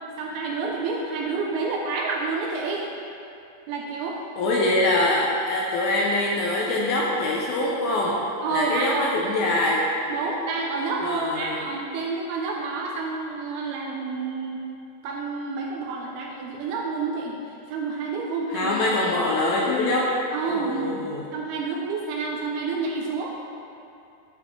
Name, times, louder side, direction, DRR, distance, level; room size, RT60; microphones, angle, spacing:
voice 1, 0.2-2.9 3.7-4.2 8.4-9.1 10.1-14.7 15.0-17.4 17.7-18.7 20.3-20.9 21.3-23.3, right 4 dB, 80° right, -1 dB, 2.3 m, -29 dB
voice 2, 4.4-8.2 8.5-9.8 11.0-11.6 18.5-20.1 20.5-21.2, left 2 dB, 85° left, -4 dB, 2.1 m, -24 dB
11.0 x 4.0 x 3.1 m, 2.6 s
omnidirectional pair, 4.8 m